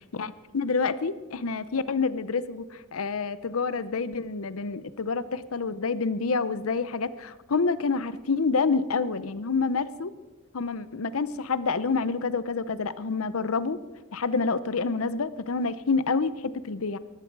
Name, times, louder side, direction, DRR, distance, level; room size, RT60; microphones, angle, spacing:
voice 1, 0.1-2.6 2.9-10.1 10.5-13.8 14.1-17.0, left 4 dB, 75° left, 15 dB, 0.7 m, -28 dB
19.0 x 14.5 x 4.7 m, 1.2 s
head